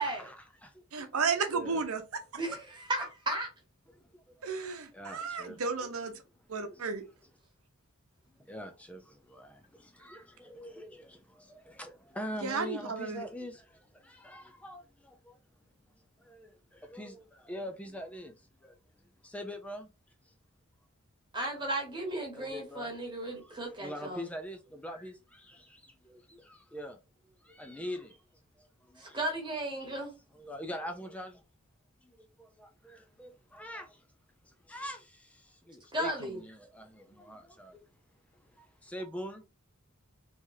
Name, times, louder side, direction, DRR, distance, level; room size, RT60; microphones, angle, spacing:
voice 1, 0.0-1.0 1.4-1.8 3.9-4.0 4.4-4.6 4.9-5.6 6.7-6.9 8.4-15.4 16.2-18.8 19.2-19.9 20.3-20.4 22.3-22.9 23.2-27.0 27.4-28.2 28.6-29.2 30.3-31.4 32.0-34.0 34.4-37.9 38.3-39.4, equal, 5° left, 0.5 m, -44 dB
voice 2, 0.9-2.0 4.4-6.1 6.5-7.0 12.4-13.2, right 5 dB, 80° right, 0.8 m, -33 dB
voice 3, 2.3-3.5 21.3-24.3 29.0-30.1 35.9-36.4, right 1 dB, 20° right, 1.2 m, -35 dB
3.5 x 3.1 x 2.7 m
head